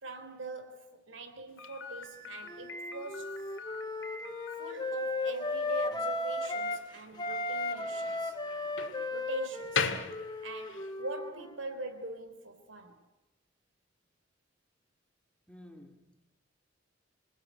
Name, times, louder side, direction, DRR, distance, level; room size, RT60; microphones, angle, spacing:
voice 1, 0.0-3.5 4.5-8.4 9.1-10.0 10.4-13.0, right 2 dB, 85° right, 3.9 m, -42 dB
Slam, 1.6-10.9, left 5 dB, 85° left, 2.1 m, -40 dB
Wind instrument woodwind instrument, 2.5-6.9 7.2-11.7, left 2 dB, 20° left, 1.7 m, -36 dB
voice 2, 15.5-16.2, left 1 dB, 5° left, 2.3 m, -53 dB
27.0 x 19.5 x 9.4 m
head